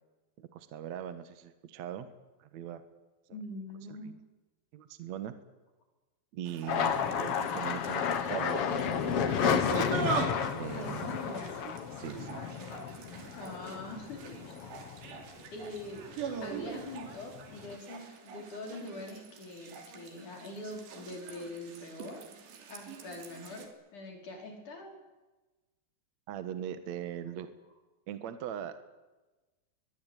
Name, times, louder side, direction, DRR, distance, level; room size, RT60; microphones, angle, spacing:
voice 1, 0.4-2.1 2.4-2.8 3.9-4.1 4.7-5.3 6.3-9.7 10.5-11.2 12.0-12.4 26.3-27.5 28.1-28.8, right 10 dB, 60° right, 10 dB, 2.0 m, -40 dB
voice 2, 3.3-4.2 10.7-11.5 13.4-14.2 14.4-14.6 15.5-16.0 16.4-22.2 22.7-25.0, left 2 dB, 45° left, 2 dB, 6.2 m, -43 dB
sound 1, 6.5-23.7, right 5 dB, 80° right, 5.0 m, -41 dB
sound 2, 6.7-15.4 15.8-16.5 16.8-17.8, left 8 dB, 80° left, 1.3 m, -32 dB
24.5 x 21.5 x 9.2 m, 1.2 s
omnidirectional pair, 4.9 m